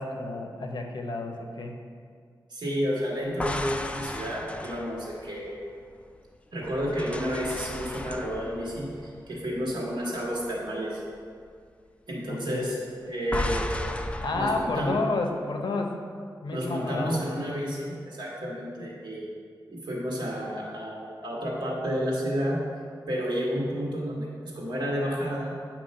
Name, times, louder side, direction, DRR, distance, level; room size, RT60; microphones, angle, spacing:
voice 1, 0.0-1.8 12.3-12.7 14.1-16.0 16.4-17.4, left 2 dB, 70° left, 3 dB, 0.7 m, -31 dB
voice 2, 2.5-5.6 6.5-11.0 12.1-12.8 13.1-13.7 14.3-14.9 16.5-19.3 19.7-22.6 23.1-24.3 24.5-25.5, equal, 75° right, -4 dB, 1.7 m, -31 dB
sound 1, 3.2-6.1 6.6-10.0 10.3-10.6 13.3-14.9, left 1 dB, 15° left, 0.3 m, -35 dB
8.6 x 3.0 x 5.3 m, 2.1 s
wide cardioid pair, 95°, 8 cm